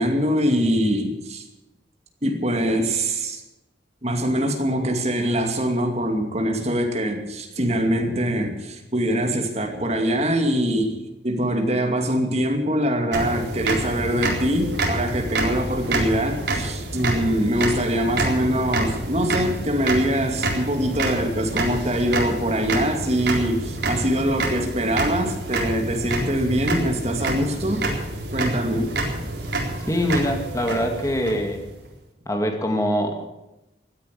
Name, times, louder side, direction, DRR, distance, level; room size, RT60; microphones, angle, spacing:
voice 1, 0.0-1.4 2.2-3.4 4.0-11.0 11.2-27.9 28.3-28.9, equal, 35° right, 3 dB, 2.5 m, -23 dB
sound 1, 13.1-31.9, right 2 dB, 70° right, 4.1 m, -28 dB
voice 2, 29.9-31.6 32.3-33.3, equal, 15° left, 4 dB, 2.3 m, -23 dB
16.0 x 10.0 x 8.5 m, 0.93 s
head